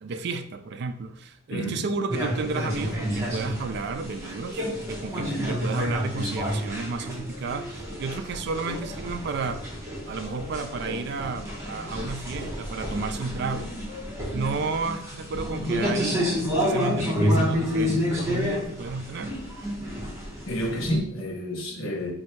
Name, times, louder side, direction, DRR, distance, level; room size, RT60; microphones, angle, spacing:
voice 1, 0.0-9.7 10.1-13.7 14.3-16.2 16.5-19.3, right 4 dB, 55° right, 9 dB, 0.3 m, -32 dB
sound 1, 2.1-21.0, equal, 15° right, 1.1 m, -29 dB
voice 2, 20.5-22.1, equal, 75° left, 0 dB, 1.0 m, -29 dB
3.3 x 2.7 x 4.4 m, 0.68 s
head